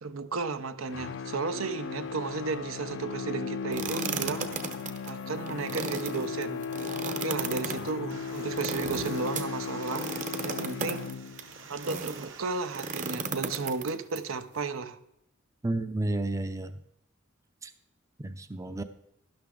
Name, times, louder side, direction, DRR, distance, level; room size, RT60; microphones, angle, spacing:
voice 1, 0.0-4.5 5.1-6.7 7.1-10.1 10.4-11.1 11.7-15.0, right 4 dB, 80° right, 0.7 m, -34 dB
sound 1, 0.9-11.6, left 6 dB, 60° left, 0.5 m, -37 dB
sound 2, 3.7-12.3 12.7-14.2, right 4 dB, 40° right, 0.8 m, -36 dB
sound 3, 8.1-13.1, right 5 dB, 65° right, 1.3 m, -48 dB
voice 2, 15.6-16.8 17.6-17.7 18.2-18.8, right 2 dB, 15° right, 0.5 m, -31 dB
12.0 x 11.0 x 3.8 m
head